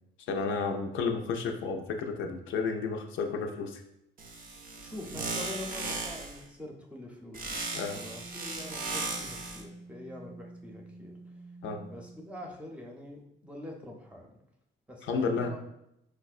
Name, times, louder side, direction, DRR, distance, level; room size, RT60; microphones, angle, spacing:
voice 1, 0.3-3.8 7.7-8.0 11.6-11.8 15.0-15.5, left 4 dB, 80° left, 4 dB, 0.5 m, -31 dB
sound 1, 4.2-6.4 7.3-9.6, right 3 dB, 45° right, 0.6 m, -37 dB
voice 2, 4.8-7.7 7.9-11.2 11.9-14.4 14.9-15.6, left 1 dB, 5° right, 0 dB, 0.7 m, -44 dB
sound 2, 7.5-12.8, right 2 dB, 85° right, 0.6 m, -49 dB
4.4 x 2.1 x 2.4 m, 0.80 s
cardioid pair, 90°, 20 cm